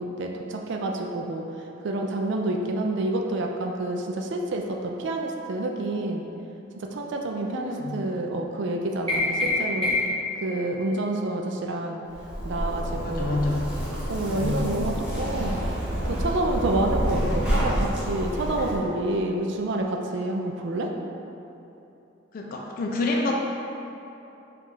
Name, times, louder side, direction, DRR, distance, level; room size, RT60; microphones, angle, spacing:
voice 1, 0.0-1.4 1.8-6.2 6.8-9.9 10.4-12.0 12.4-13.5 14.1-15.6 16.0-20.9, right 2 dB, 65° right, 2 dB, 0.4 m, -28 dB
voice 2, 7.4-8.0 13.0-13.6 14.3-14.6 22.3-23.4, left 2 dB, 45° left, -1 dB, 0.3 m, -28 dB
sound 1, 9.1-10.3, left 2 dB, 25° right, 1.3 m, -25 dB
Zipper (clothing), 12.1-18.8, equal, 5° right, 0.9 m, -28 dB
4.4 x 2.4 x 3.9 m, 2.9 s
head